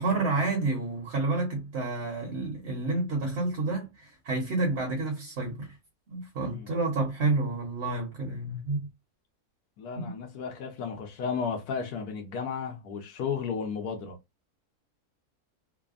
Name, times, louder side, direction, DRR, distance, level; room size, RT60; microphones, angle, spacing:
voice 1, 0.0-5.7 6.1-8.9 10.0-10.1, right 3 dB, 55° right, 1.0 m, -29 dB
voice 2, 9.8-14.2, left 6 dB, 80° left, 1.2 m, -34 dB
3.3 x 2.0 x 2.4 m
omnidirectional pair, 1.6 m